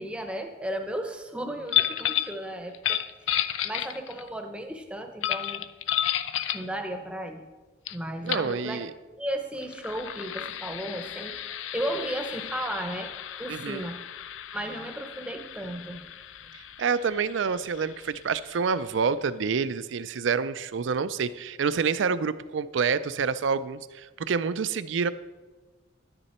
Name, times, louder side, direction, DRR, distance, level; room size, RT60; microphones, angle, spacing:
voice 1, 0.0-5.7 6.5-7.4 7.9-8.8 9.2-13.1 13.4-14.0 14.5-16.0 16.4-16.5, right 1 dB, 5° right, 5 dB, 0.7 m, -35 dB
sound 1, 1.7-2.4 2.7-4.3 5.2-6.7 7.9-8.0 8.3-8.5 9.6-18.9, left 11 dB, 90° left, 0.4 m, -32 dB
voice 2, 8.2-8.9 13.5-13.9 16.5-25.1, right 5 dB, 75° right, 15 dB, 0.4 m, -28 dB
11.0 x 9.7 x 4.3 m, 1.3 s
head